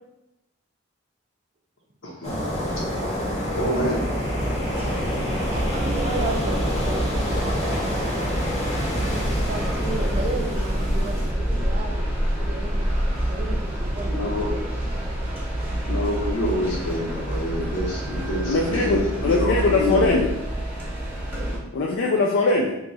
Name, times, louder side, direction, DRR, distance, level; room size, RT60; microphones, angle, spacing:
voice 1, 2.0-2.3 3.5-4.1 14.1-14.5 15.8-20.2, left 1 dB, 85° left, -2 dB, 1.0 m, -27 dB
sound 1, 2.2-11.3, equal, 35° left, 0.9 m, -28 dB
sound 2, 3.3-21.6, right 1 dB, 10° right, 0.8 m, -27 dB
voice 2, 5.5-7.7 9.4-12.9 13.3-14.8, right 2 dB, 30° right, 1 dB, 0.4 m, -34 dB
voice 3, 18.5-20.3 21.7-22.8, left 3 dB, 65° left, -1 dB, 0.4 m, -21 dB
2.9 x 2.3 x 3.9 m, 0.89 s
head